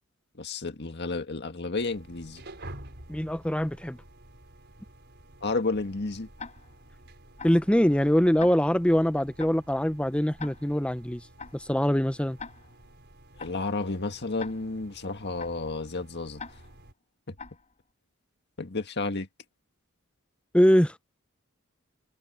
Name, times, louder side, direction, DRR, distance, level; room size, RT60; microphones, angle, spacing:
voice 1, 0.4-2.4 5.4-6.3 13.4-16.4 17.3-17.4 18.6-19.3, left 3 dB, 50° left, 1.8 m, -31 dB
sound 1, 1.8-16.9, right 1 dB, 50° right, 5.6 m, -51 dB
voice 2, 3.1-4.0 7.4-11.2 11.5-12.4 20.5-21.0, equal, 5° left, 0.9 m, -23 dB
Tick-tock, 6.4-6.9 7.4-7.7 8.4-8.9 9.4-9.7 10.4-10.9 11.4-11.7 12.4-12.9 13.4-13.7 14.4-14.9 15.4-15.7 16.4-16.9 17.4-17.7, left 4 dB, 35° left, 4.7 m, -44 dB
head